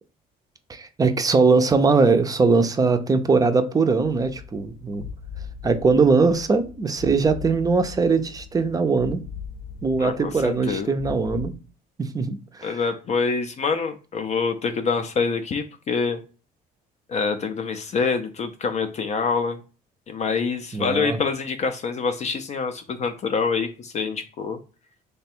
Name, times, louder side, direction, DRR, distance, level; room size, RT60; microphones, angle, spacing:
voice 1, 0.7-5.0 5.6-9.2 9.8-11.5 12.0-12.8 20.7-21.2, right 4 dB, 20° right, 8 dB, 0.4 m, -21 dB
sound 1, 4.0-11.5, left 7 dB, 75° left, 0.8 m, -39 dB
voice 2, 10.0-10.9 12.6-16.2 17.1-19.6 20.1-24.6, left 5 dB, 40° left, 7 dB, 0.4 m, -26 dB
3.2 x 2.2 x 4.2 m, 0.36 s
cardioid pair, 110°, 17 cm